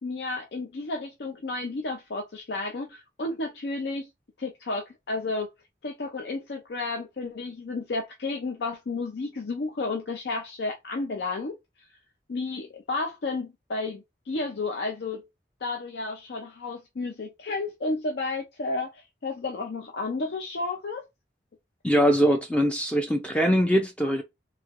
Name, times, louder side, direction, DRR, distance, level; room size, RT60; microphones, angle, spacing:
voice 1, 0.0-4.1 4.4-5.5 5.8-11.6 12.3-15.3 15.6-21.0, left 3 dB, 70° left, 0.5 m, -32 dB
voice 2, 21.8-24.2, equal, 5° left, 0.3 m, -22 dB
3.1 x 2.9 x 2.4 m
head